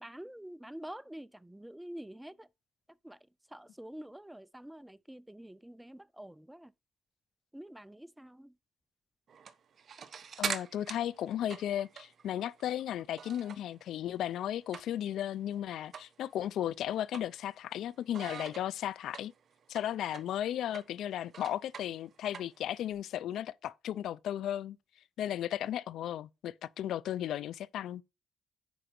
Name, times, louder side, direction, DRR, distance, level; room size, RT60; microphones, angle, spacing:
voice 1, 0.0-2.5 3.0-3.2 3.5-6.7 7.5-8.5, right 1 dB, 5° right, 0.4 m, -47 dB
sound 1, 9.3-13.8 14.1-15.2 15.5-15.6 15.9-16.1 16.5-17.8 18.1-22.9, right 6 dB, 50° right, 1.1 m, -43 dB
voice 2, 10.4-19.3 19.7-24.8 25.2-28.0, left 11 dB, 75° left, 0.4 m, -35 dB
10.5 x 4.8 x 4.4 m
cardioid pair, 90°, 0 cm